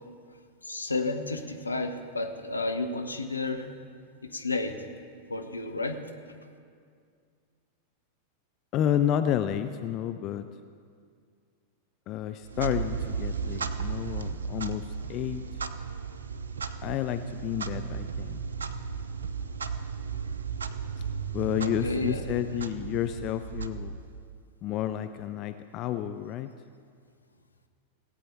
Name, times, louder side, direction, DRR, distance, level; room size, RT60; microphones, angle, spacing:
voice 1, 0.6-3.7 4.2-4.7 5.3-6.0 21.5-22.2 22.5-22.7, left 3 dB, 80° left, 6 dB, 0.9 m, -32 dB
voice 2, 8.7-10.4 12.1-15.4 16.8-18.4 21.3-23.9 24.6-26.5, left 10 dB, 35° left, 10 dB, 0.4 m, -30 dB
Clock, 12.4-24.4, right 6 dB, 70° right, 0.6 m, -35 dB
17.5 x 8.5 x 4.5 m, 2.2 s
figure-of-eight pair, 90°, 0 cm